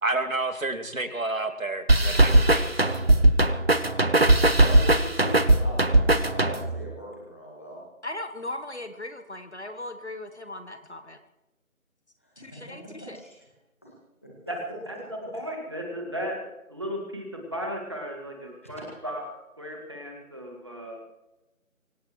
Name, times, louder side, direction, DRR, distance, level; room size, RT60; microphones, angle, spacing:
voice 1, 0.0-3.0, right 2 dB, 70° right, 7 dB, 2.3 m, -30 dB
sound 1, 1.9-6.8, right 1 dB, 45° right, 1.0 m, -19 dB
voice 2, 4.6-7.8 12.2-12.6 13.1-13.4 13.8-13.9 14.2-14.3 18.6-19.0, equal, 10° left, -4 dB, 1.7 m, -40 dB
voice 3, 8.0-11.2 12.4-13.2, left 1 dB, 50° left, 8 dB, 1.2 m, -38 dB
voice 4, 15.3-16.4 16.7-21.0, equal, 20° right, 1 dB, 1.9 m, -35 dB
24.5 x 17.0 x 3.1 m, 0.98 s
figure-of-eight pair, 170°, 42 cm